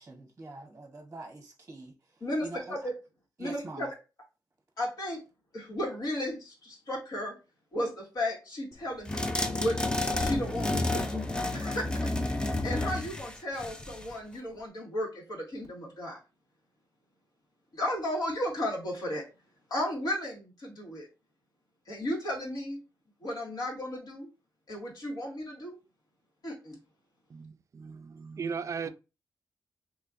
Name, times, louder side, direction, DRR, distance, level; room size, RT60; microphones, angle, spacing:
voice 1, 0.0-2.9 3.4-3.9 28.8-28.9, right 2 dB, 25° right, 0.9 m, -45 dB
voice 2, 2.2-2.9 3.4-3.9 4.8-5.2 5.5-7.4 7.7-9.8 10.2-11.2 11.5-16.2 17.7-19.2 19.7-21.1 21.9-22.8 23.2-24.3 24.7-25.8 26.4-26.8, left 1 dB, 60° left, 2.0 m, -34 dB
sound 1, 9.1-14.1, left 2 dB, 10° left, 0.5 m, -31 dB
voice 3, 27.3-28.9, right 5 dB, 45° right, 0.3 m, -37 dB
4.3 x 2.9 x 2.5 m
wide cardioid pair, 105°, 8 cm